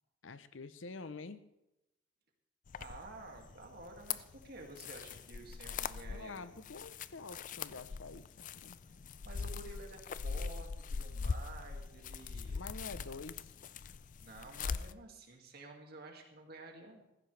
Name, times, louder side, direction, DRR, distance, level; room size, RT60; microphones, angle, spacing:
voice 1, 0.2-1.5 6.1-8.8 12.5-13.5, left 3 dB, 80° left, 13 dB, 0.8 m, -47 dB
sound 1, 2.7-14.9, left 5 dB, 40° left, 0.4 m, -42 dB
voice 2, 2.8-6.4 6.8-6.9 9.2-12.6 14.2-17.0, right 2 dB, 55° right, 2 dB, 2.3 m, -51 dB
15.5 x 15.0 x 3.4 m, 0.91 s
head